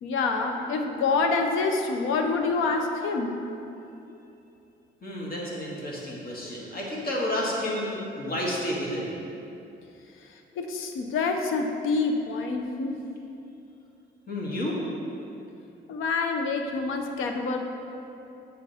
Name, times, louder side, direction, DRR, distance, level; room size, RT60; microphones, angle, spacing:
voice 1, 0.0-3.3 10.6-13.0 15.9-17.6, left 4 dB, 90° left, 4 dB, 0.8 m, -27 dB
voice 2, 5.0-9.1 14.3-14.8, left 1 dB, 50° left, -4 dB, 1.9 m, -30 dB
7.3 x 6.6 x 4.2 m, 2.8 s
cardioid pair, 90°, 20 cm